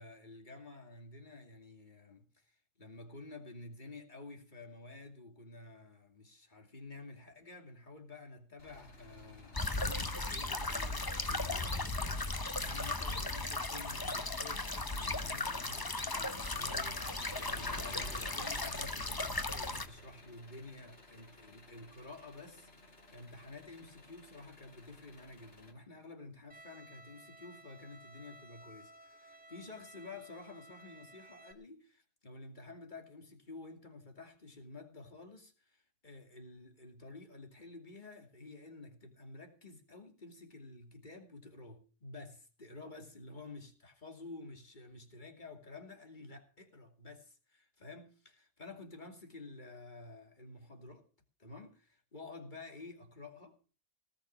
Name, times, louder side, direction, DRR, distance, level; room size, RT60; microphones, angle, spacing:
voice 1, 0.0-51.0 51.4-53.6, left 2 dB, 40° left, 2.8 m, -51 dB
Engine, 8.6-25.7, left 2 dB, 70° left, 3.4 m, -54 dB
sound 1, 9.5-19.9, left 2 dB, 20° left, 1.0 m, -36 dB
Bowed string instrument, 26.5-31.5, right 1 dB, 5° right, 2.2 m, -56 dB
18.5 x 6.5 x 8.6 m
omnidirectional pair, 1.2 m